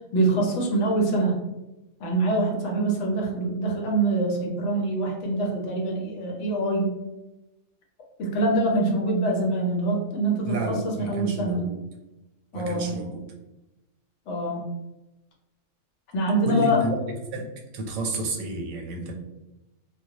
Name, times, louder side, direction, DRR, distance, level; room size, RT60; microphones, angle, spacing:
voice 1, 0.1-1.4 2.0-7.0 8.2-11.6 12.5-12.9 14.3-14.6 16.1-16.8, right 2 dB, 65° left, 0 dB, 0.8 m, -24 dB
voice 2, 10.4-11.8 12.5-13.2 16.4-17.5 17.7-19.1, right 1 dB, 90° right, 2 dB, 1.0 m, -30 dB
2.2 x 2.1 x 2.7 m, 0.99 s
omnidirectional pair, 1.4 m